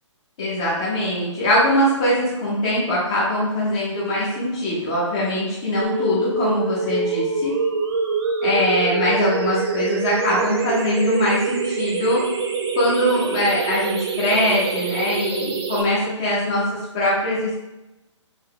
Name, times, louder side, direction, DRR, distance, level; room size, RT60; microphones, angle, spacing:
voice 1, 0.4-7.5 8.4-12.2 12.8-16.6 16.9-17.6, left 1 dB, 10° left, -8 dB, 0.3 m, -22 dB
sound 1, 5.8-15.8, right 4 dB, 50° right, 0.7 m, -25 dB
5.3 x 2.1 x 3.6 m, 1.0 s
hypercardioid pair, 170°, 16 cm